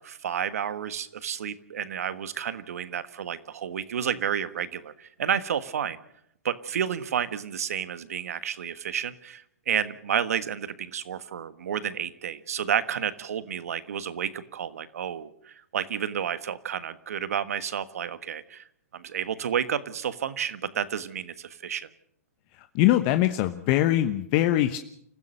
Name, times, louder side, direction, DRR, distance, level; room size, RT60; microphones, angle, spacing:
voice 1, 0.0-6.0 6.4-18.6 18.9-21.9, right 8 dB, 70° right, 13 dB, 1.5 m, -31 dB
voice 2, 22.7-24.8, left 14 dB, 40° left, 9 dB, 1.1 m, -22 dB
29.0 x 15.0 x 6.6 m, 0.72 s
hypercardioid pair, 125°, 8 cm